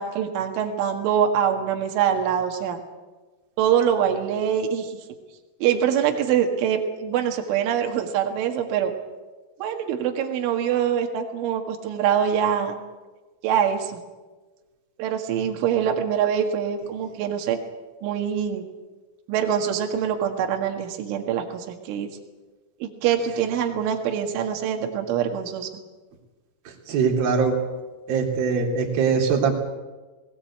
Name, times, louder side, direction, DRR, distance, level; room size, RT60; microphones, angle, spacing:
voice 1, 0.0-2.8 3.6-5.0 5.6-8.9 9.6-12.8 13.4-14.0 15.0-17.6 18.0-18.7 19.3-22.1 22.8-25.7, right 8 dB, 75° right, 4 dB, 4.2 m, -24 dB
voice 2, 26.7-27.6 28.1-29.5, right 5 dB, 50° right, 0 dB, 4.6 m, -22 dB
20.5 x 18.5 x 8.6 m, 1.2 s
omnidirectional pair, 5.7 m